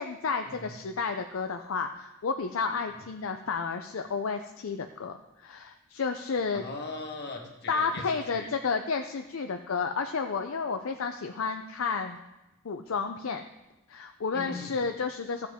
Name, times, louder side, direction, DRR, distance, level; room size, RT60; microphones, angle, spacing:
voice 1, 0.0-5.2 5.4-6.6 7.7-12.2 12.6-13.4 13.9-15.5, left 5 dB, 65° left, 6 dB, 0.5 m, -31 dB
voice 2, 6.5-8.5 14.3-14.8, left 3 dB, 50° left, 1 dB, 1.5 m, -40 dB
14.5 x 7.5 x 3.6 m, 1.0 s
head